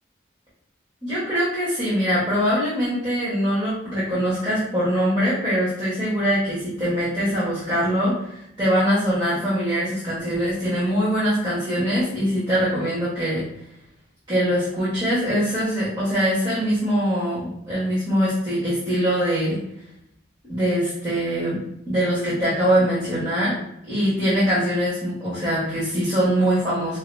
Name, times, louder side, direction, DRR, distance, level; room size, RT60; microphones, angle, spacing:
voice 1, 1.0-13.4 14.3-19.6 20.5-23.5 23.9-27.0, equal, 25° right, -11 dB, 1.4 m, -23 dB
4.8 x 2.9 x 2.2 m, 0.79 s
head